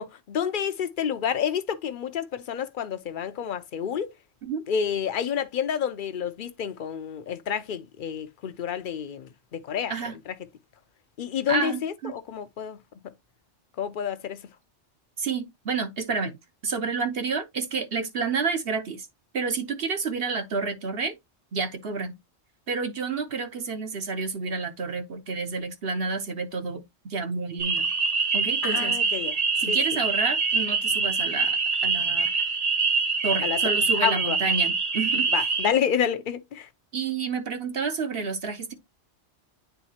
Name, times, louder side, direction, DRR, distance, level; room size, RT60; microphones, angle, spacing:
voice 1, 0.0-4.1 4.7-9.9 11.2-12.8 13.8-14.4 28.6-29.4 29.7-29.8 33.4-33.6 34.0-34.4 35.3-36.7, left 8 dB, 50° left, 0.8 m, -29 dB
voice 2, 11.5-12.1 15.2-16.3 16.6-19.1 19.3-21.1 21.5-22.1 22.7-27.9 28.3-29.0 29.6-31.6 31.8-32.3 33.2-35.5 36.9-38.7, right 4 dB, 60° right, 1.1 m, -29 dB
sound 1, 27.6-35.7, right 4 dB, 35° right, 1.0 m, -25 dB
9.1 x 3.9 x 2.8 m
omnidirectional pair, 1.2 m